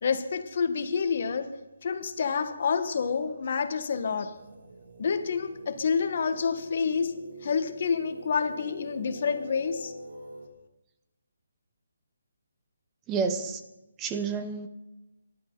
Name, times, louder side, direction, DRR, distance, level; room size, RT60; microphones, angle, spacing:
voice 1, 0.0-1.5 1.8-4.4 5.0-9.9, left 6 dB, 40° left, 9 dB, 1.3 m, -28 dB
sound 1, 4.3-10.5, right 1 dB, 70° right, 2.5 m, -45 dB
voice 2, 13.1-13.6 14.0-14.7, right 5 dB, 10° right, 9 dB, 0.7 m, -29 dB
24.0 x 11.5 x 3.9 m, 1.0 s
hypercardioid pair, 175°, 0 cm